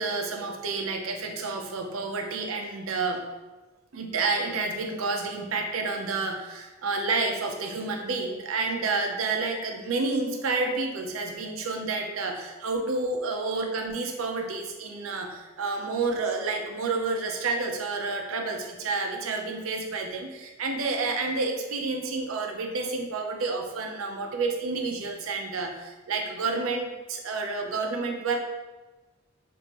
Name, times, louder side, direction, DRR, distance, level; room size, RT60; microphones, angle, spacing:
voice 1, 0.0-3.2 3.9-28.4, right 3 dB, 75° right, 3 dB, 0.6 m, -29 dB
6.2 x 2.5 x 2.9 m, 1.2 s
head